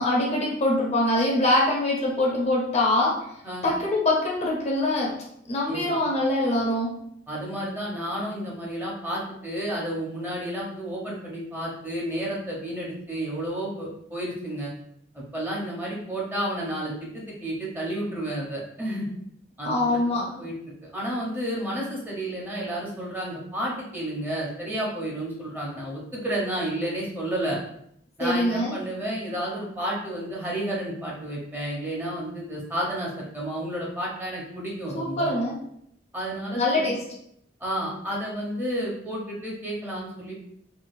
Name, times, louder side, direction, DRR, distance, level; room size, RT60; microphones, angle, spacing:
voice 1, 0.0-3.3 3.6-5.2 5.5-7.0 19.6-20.4 28.2-28.8 34.9-35.6 36.5-37.0, left 1 dB, 35° left, -2 dB, 0.6 m, -24 dB
voice 2, 5.7-6.0 7.3-14.7 15.1-19.1 19.6-20.5 20.9-27.6 28.2-35.3 36.1-36.8 37.6-40.3, right 1 dB, 10° right, -4 dB, 0.8 m, -31 dB
3.8 x 2.3 x 2.5 m, 0.71 s
head